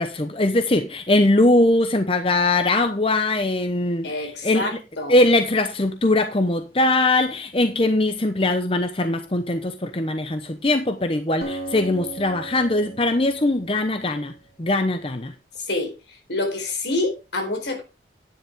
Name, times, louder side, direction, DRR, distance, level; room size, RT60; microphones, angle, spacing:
voice 1, 0.0-4.1 4.4-4.7 5.1-14.3 14.6-15.3, left 2 dB, 30° left, 0.8 m, -21 dB
voice 2, 4.0-5.2 15.6-15.9 16.3-17.8, left 2 dB, 80° left, 4.3 m, -27 dB
Acoustic guitar, 11.4-15.0, right 2 dB, 55° left, 3.1 m, -37 dB
10.5 x 9.9 x 3.6 m
head